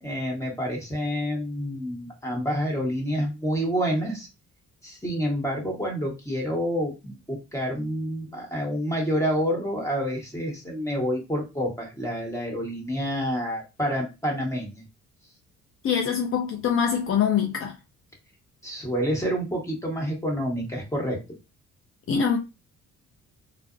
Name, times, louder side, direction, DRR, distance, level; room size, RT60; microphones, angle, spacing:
voice 1, 0.0-4.3 4.8-14.8 18.6-21.2, equal, 10° left, 1.2 m, -28 dB
voice 2, 15.8-17.8 22.1-22.4, left 7 dB, 45° left, 0.5 m, -24 dB
2.4 x 2.0 x 2.5 m
cardioid pair, 90°, 30 cm